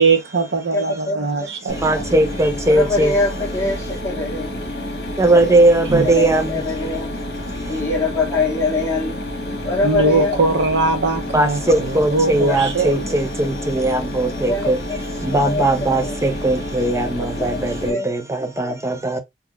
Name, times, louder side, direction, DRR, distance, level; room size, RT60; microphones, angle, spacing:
voice 1, 0.0-2.0 5.9-6.1 7.5-7.7 9.8-13.0, right 3 dB, 90° right, 0.8 m, -21 dB
voice 2, 0.7-1.5 1.9-2.1 2.7-4.5 6.0-7.1 7.7-9.2 9.6-10.4 12.3-12.6 13.1-13.2 14.3-15.0 15.4-16.2 17.0-17.6 17.9-18.1, left 3 dB, 15° left, 1.2 m, -24 dB
voice 3, 1.6-3.1 5.2-6.6 7.6-7.7 11.3-14.8 15.2-19.2, right 2 dB, 15° right, 0.5 m, -19 dB
Mechanisms, 1.7-17.9, left 1 dB, 60° left, 1.1 m, -29 dB
3.8 x 2.9 x 2.3 m
head